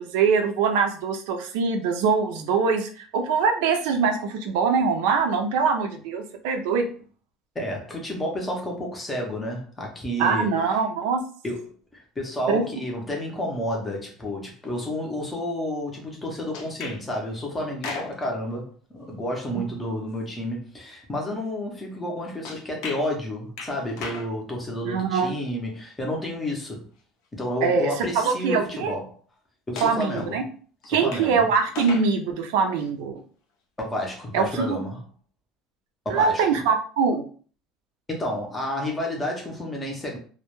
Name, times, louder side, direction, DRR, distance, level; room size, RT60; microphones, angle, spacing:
voice 1, 0.0-6.9 10.2-11.2 12.5-12.6 19.5-19.6 24.8-25.3 27.6-29.0 29.8-30.4 30.9-33.2 34.3-34.8 36.1-37.2, right 5 dB, 85° right, 5 dB, 0.4 m, -23 dB
voice 2, 7.5-10.5 11.4-11.7 11.9-26.9 27.3-29.0 29.7-30.5 30.8-31.4 33.8-35.0 36.1-36.4 38.1-40.2, left 1 dB, 10° left, 0 dB, 0.5 m, -30 dB
sound 1, 16.5-17.0 17.7-18.4 22.4-23.1 23.6-24.3 26.2-26.3 27.5-27.6 29.8-30.4 30.8-31.3 31.6-32.1 32.8-32.9, left 4 dB, 65° left, 0.5 m, -36 dB
2.2 x 2.0 x 2.9 m, 0.42 s
cardioid pair, 175°, 0 cm